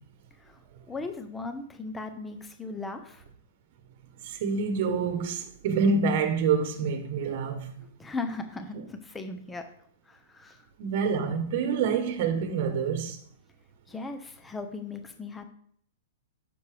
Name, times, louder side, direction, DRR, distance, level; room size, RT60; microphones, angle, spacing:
voice 1, 0.9-3.2 8.0-9.6 10.1-10.7 13.9-15.4, left 3 dB, 10° left, 0.8 m, -37 dB
voice 2, 4.2-7.9 8.7-8.8 10.8-13.2, right 5 dB, 50° right, 1.2 m, -27 dB
9.6 x 6.8 x 3.4 m
hypercardioid pair, 145°, 0 cm